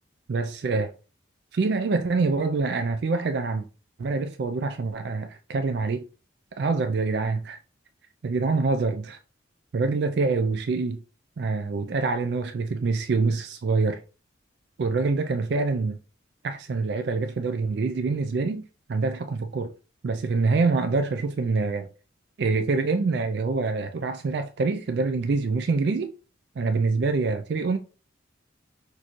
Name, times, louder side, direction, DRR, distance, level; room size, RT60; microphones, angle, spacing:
voice 1, 0.3-0.9 1.5-3.6 4.0-6.0 6.6-7.6 8.2-9.2 9.7-11.0 11.4-14.0 14.8-16.0 16.4-19.7 20.0-21.9 22.4-26.1 26.6-27.8, right 4 dB, 55° right, 0.4 m, -25 dB
6.2 x 2.6 x 3.0 m
head